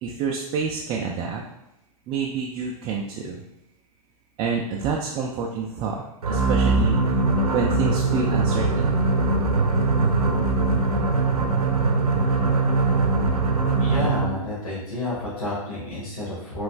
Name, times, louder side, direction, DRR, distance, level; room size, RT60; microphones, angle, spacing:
voice 1, 0.0-1.4 2.1-3.4 4.4-7.0 7.5-9.1, right 5 dB, 25° right, -1 dB, 0.3 m, -28 dB
sound 1, 6.2-14.5, right 3 dB, 80° right, 0.6 m, -21 dB
voice 2, 13.8-16.6, left 2 dB, 65° left, -7 dB, 1.4 m, -30 dB
5.0 x 3.1 x 2.3 m, 0.90 s
figure-of-eight pair, 105°, 19 cm